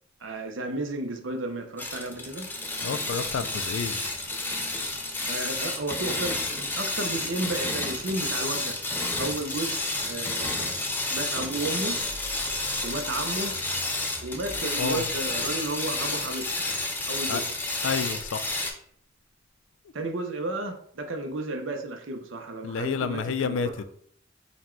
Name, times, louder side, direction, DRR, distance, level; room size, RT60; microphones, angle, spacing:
voice 1, 0.2-2.5 5.3-8.8 9.2-9.8 10.1-10.7 11.1-12.0 12.3-12.4 12.8-13.5 14.2-16.5 17.1-17.5 19.9-23.8, right 2 dB, 80° right, 6 dB, 0.6 m, -33 dB
sound 1, 1.8-18.7, left 2 dB, 10° left, 0.5 m, -30 dB
voice 2, 2.8-4.0 14.8-15.1 17.3-17.4 17.8-18.5 22.6-23.8, left 5 dB, 80° left, 12 dB, 0.4 m, -29 dB
sound 2, 12.0-17.3, equal, 35° right, 0.7 m, -46 dB
4.1 x 2.2 x 4.3 m, 0.62 s
head